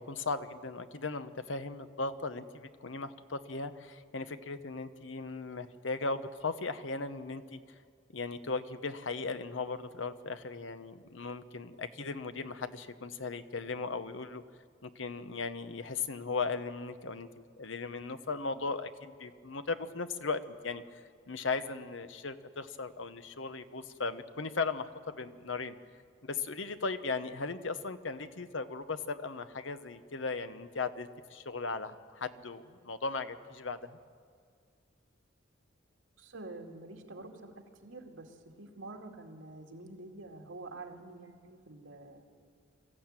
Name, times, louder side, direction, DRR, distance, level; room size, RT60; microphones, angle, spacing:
voice 1, 0.0-7.6 8.1-14.4 14.8-17.3 17.6-25.7 26.2-34.0, left 4 dB, 75° left, 11 dB, 1.0 m, -37 dB
voice 2, 36.2-37.5 37.8-42.2, right 2 dB, 85° right, 2 dB, 2.5 m, -47 dB
23.5 x 14.0 x 9.0 m, 2.2 s
head